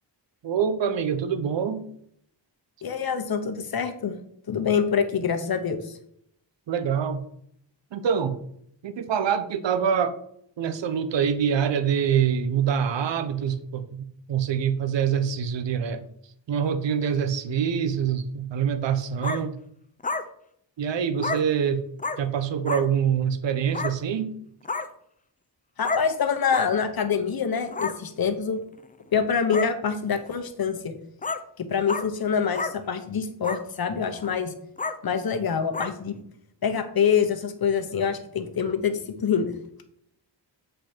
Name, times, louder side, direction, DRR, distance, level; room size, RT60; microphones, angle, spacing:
voice 1, 0.4-1.8 6.7-7.2 7.9-8.3 8.8-10.2 10.6-16.0 16.5-19.6 20.8-21.8 22.2-24.3, right 7 dB, 75° right, 11 dB, 0.8 m, -25 dB
voice 2, 2.8-4.1 4.5-6.0 25.8-28.6 29.1-30.9 31.6-34.5 35.0-36.2 36.6-39.5, left 6 dB, 55° left, 8 dB, 1.0 m, -25 dB
sound 1, 19.2-19.4 20.0-20.2 21.2-21.4 22.0-22.2 22.7-22.8 23.7-23.9 24.6-24.9 25.8-26.0 26.5-26.7 27.7-27.9 28.8-28.9 29.5-29.7 30.3-30.4 31.2-31.4 31.9-32.1 32.6-32.7 33.4-33.6 34.1-34.3 34.8-35.0 35.7-35.9, left 3 dB, 20° left, 0.5 m, -29 dB
7.8 x 5.1 x 4.4 m, 0.70 s
wide cardioid pair, 130°, 44 cm